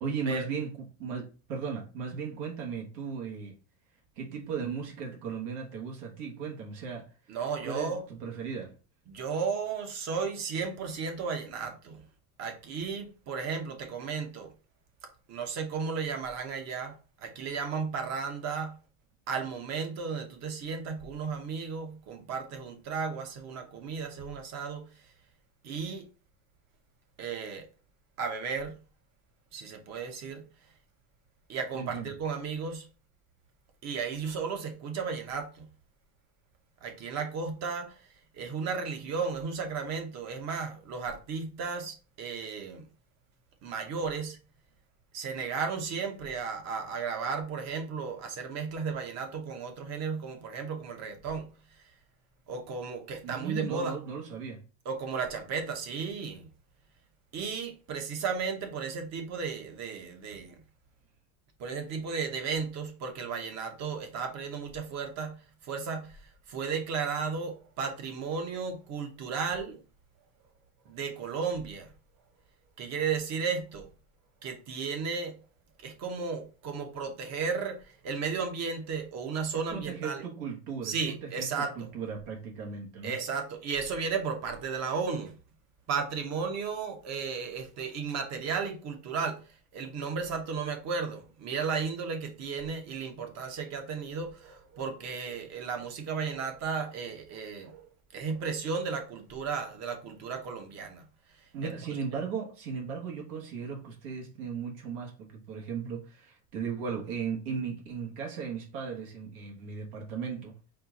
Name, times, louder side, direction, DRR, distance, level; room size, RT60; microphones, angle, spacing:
voice 1, 0.0-3.5 4.2-7.1 7.6-8.7 31.7-32.1 53.2-54.6 79.7-83.2 101.5-110.5, right 6 dB, 75° right, 1.5 m, -36 dB
voice 2, 7.3-8.0 9.1-12.0 12.4-14.5 15.0-18.8 19.3-25.1 25.6-26.1 27.2-27.7 28.2-28.8 29.5-30.4 31.5-32.9 33.8-35.7 36.8-38.1 38.3-42.9 43.6-44.4 45.1-51.8 52.5-54.0 54.8-56.5 57.3-60.6 61.6-69.8 70.9-71.9 72.8-73.9 74.4-75.4 75.8-80.2 80.8-81.9 83.0-85.4 85.9-97.8 98.1-102.2, right 5 dB, 35° right, 0.9 m, -34 dB
4.3 x 2.4 x 4.0 m
supercardioid pair, 145°, 46 cm